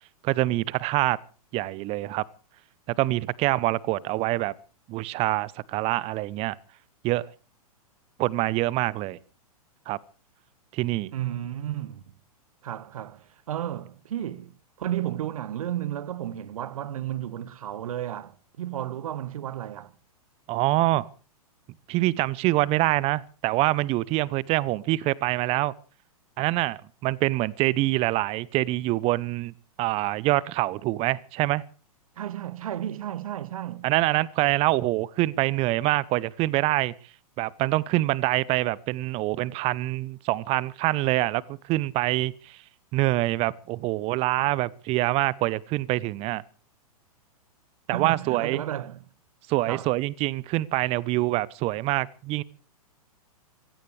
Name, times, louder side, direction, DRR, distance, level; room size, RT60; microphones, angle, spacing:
voice 1, 0.2-1.2 1.5-2.2 2.9-4.5 4.9-6.5 7.0-7.2 8.2-9.2 9.9-10.0 10.7-11.1 20.5-21.1 21.9-25.7 26.4-29.5 29.8-31.6 33.8-36.9 37.4-41.4 41.7-42.3 42.9-46.4 47.9-48.6 49.5-52.4, right 18 dB, 30° right, 0.8 m, -25 dB
voice 2, 11.1-12.0 12.6-19.9 32.2-33.9 47.9-49.1 49.7-49.9, right 11 dB, 65° right, 1.4 m, -33 dB
24.5 x 16.5 x 3.3 m
figure-of-eight pair, 110°, 19 cm